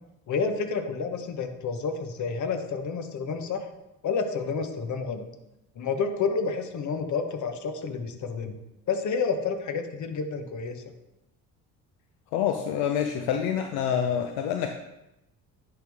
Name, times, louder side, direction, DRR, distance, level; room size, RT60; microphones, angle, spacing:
voice 1, 0.3-3.7 4.0-5.2 5.7-8.5 8.9-10.8, left 5 dB, 50° left, 7 dB, 1.0 m, -29 dB
voice 2, 12.3-14.7, left 8 dB, 75° left, 5 dB, 0.6 m, -27 dB
10.5 x 3.5 x 3.5 m, 0.92 s
supercardioid pair, 65°, 38 cm